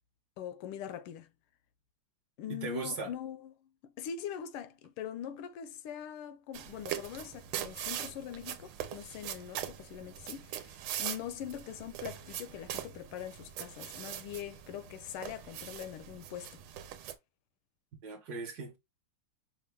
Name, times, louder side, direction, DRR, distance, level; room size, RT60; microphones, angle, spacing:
voice 1, 0.4-1.3 2.4-3.7 4.0-16.6, left 9 dB, 85° left, 1.4 m, -42 dB
voice 2, 2.5-3.1 18.0-18.8, right 3 dB, 55° right, 1.2 m, -38 dB
sound 1, 6.5-17.1, right 11 dB, 80° right, 1.5 m, -42 dB
5.6 x 2.3 x 3.3 m
omnidirectional pair, 2.3 m